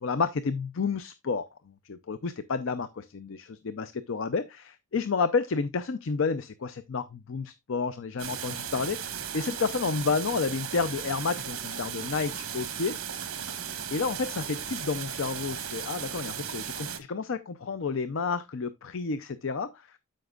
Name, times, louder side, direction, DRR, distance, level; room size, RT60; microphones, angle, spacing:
voice 1, 0.0-1.5 1.9-9.1 9.3-13.0 13.9-19.9, left 4 dB, 60° left, 0.5 m, -30 dB
sound 1, 8.2-17.0, right 8 dB, 60° right, 1.4 m, -36 dB
13.0 x 5.2 x 2.3 m
head